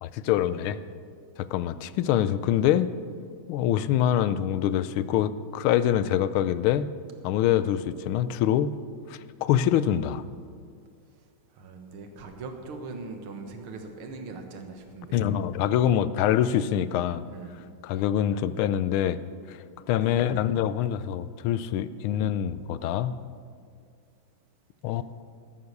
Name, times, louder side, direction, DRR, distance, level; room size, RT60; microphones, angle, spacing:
voice 1, 0.0-0.8 1.4-2.9 3.5-6.9 7.2-8.7 9.1-10.2 15.1-17.2 17.8-19.2 19.5-19.6 19.9-23.1 24.8-25.0, left 10 dB, 85° left, 15 dB, 1.4 m, -25 dB
voice 2, 11.2-15.2 17.3-17.5 25.0-25.1, right 3 dB, 90° right, 5 dB, 2.2 m, -41 dB
13.5 x 9.5 x 6.6 m, 2.2 s
omnidirectional pair, 2.3 m